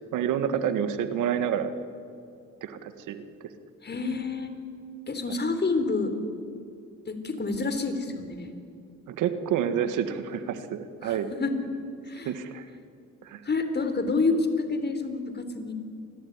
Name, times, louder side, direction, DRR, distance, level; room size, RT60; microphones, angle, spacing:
voice 1, 0.0-1.7 2.6-3.2 9.1-11.3 12.2-12.7 13.2-13.4, right 9 dB, 85° right, 10 dB, 1.9 m, -28 dB
voice 2, 3.8-4.5 5.1-6.1 7.1-8.5 11.0-11.5 12.1-12.3 13.4-15.7, left 3 dB, 35° left, 8 dB, 4.0 m, -28 dB
28.0 x 21.0 x 9.8 m, 2.5 s
cardioid pair, 90°, 30 cm